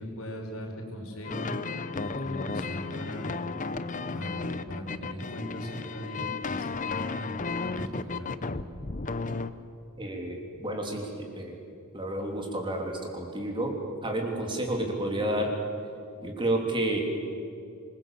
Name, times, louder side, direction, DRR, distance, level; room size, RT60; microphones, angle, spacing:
voice 1, 0.0-3.4 4.1-8.3, equal, 75° left, 1 dB, 5.2 m, -39 dB
sound 1, 1.2-9.5, left 4 dB, 35° left, 0.8 m, -33 dB
voice 2, 10.0-11.6 11.9-13.7 14.0-15.5 16.2-17.0, right 1 dB, 20° right, 2 dB, 3.3 m, -30 dB
26.5 x 21.5 x 7.6 m, 2.5 s
head